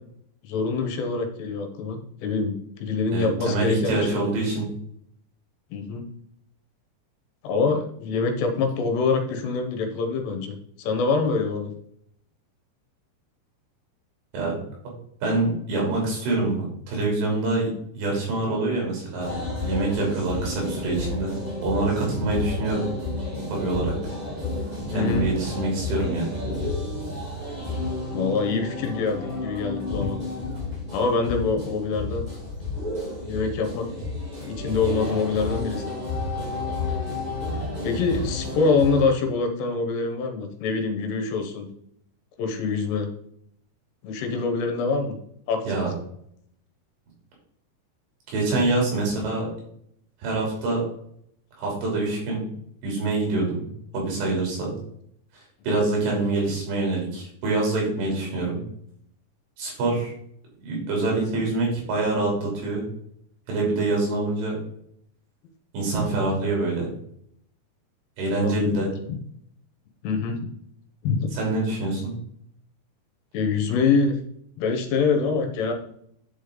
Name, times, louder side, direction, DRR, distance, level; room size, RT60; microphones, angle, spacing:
voice 1, 0.4-4.1 5.7-6.0 7.4-11.7 24.9-25.3 28.1-30.2 30.9-32.2 33.2-33.9 34.4-35.9 37.8-41.7 42.4-43.1 44.0-45.2 45.5-45.6 68.4-68.8 70.0-70.5 71.0-71.3 73.3-74.2 74.6-75.7, left 4 dB, 80° left, 4 dB, 3.3 m, -25 dB
voice 2, 3.1-4.7 14.3-14.6 15.2-17.7 18.0-19.3 19.6-21.4 21.6-22.9 23.5-23.9 24.9-26.3 45.7-45.9 48.3-49.5 50.2-50.8 51.6-52.5 52.8-53.7 53.9-54.7 55.3-58.6 59.6-60.1 60.6-62.9 63.5-64.6 65.7-66.9 68.2-68.9 71.3-72.1, right 2 dB, 80° right, -2 dB, 5.4 m, -25 dB
sound 1, 19.1-39.0, left 2 dB, 20° right, 1.2 m, -31 dB
10.0 x 5.2 x 3.9 m, 0.70 s
omnidirectional pair, 4.9 m